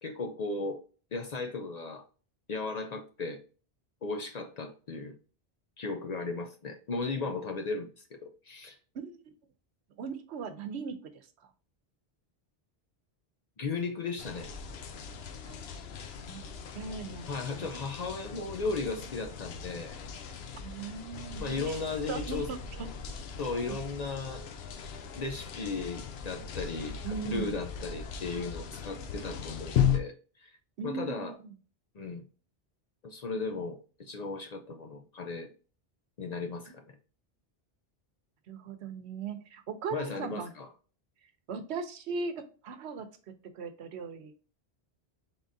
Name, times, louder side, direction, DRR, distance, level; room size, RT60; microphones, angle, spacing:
voice 1, 0.0-0.8 1.1-2.0 2.5-3.4 4.0-5.1 5.8-8.8 13.6-14.5 17.3-20.0 21.4-22.5 23.4-24.4 25.1-30.6 30.8-31.4 31.9-32.2 33.0-35.5 36.2-37.0 39.9-40.7, left 3 dB, 55° left, 0.5 m, -36 dB
voice 2, 10.0-11.3 15.5-15.6 16.2-16.4 16.7-17.7 20.6-21.8 22.1-22.9 27.0-27.7 30.8-31.5 38.5-40.5 41.5-43.1 43.5-44.3, right 5 dB, 90° right, 0.9 m, -39 dB
sound 1, 14.2-30.0, left 8 dB, 75° left, 0.9 m, -37 dB
3.8 x 3.6 x 2.5 m
omnidirectional pair, 1.1 m